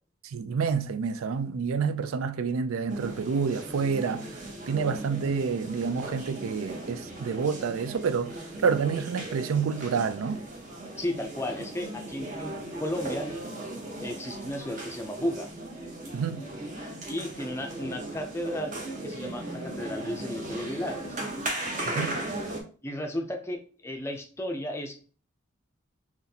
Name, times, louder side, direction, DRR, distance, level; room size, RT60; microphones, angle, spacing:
voice 1, 0.2-4.4 4.7-8.3 8.6-10.4 16.1-16.4 21.8-22.2, right 5 dB, 85° right, 0.4 m, -28 dB
sound 1, 2.9-22.6, right 1 dB, 40° right, 0.8 m, -37 dB
voice 2, 11.0-13.3 14.0-15.5 17.1-18.7 19.0-21.2 22.8-25.0, left 1 dB, 10° left, 0.4 m, -34 dB
4.1 x 3.0 x 2.7 m
head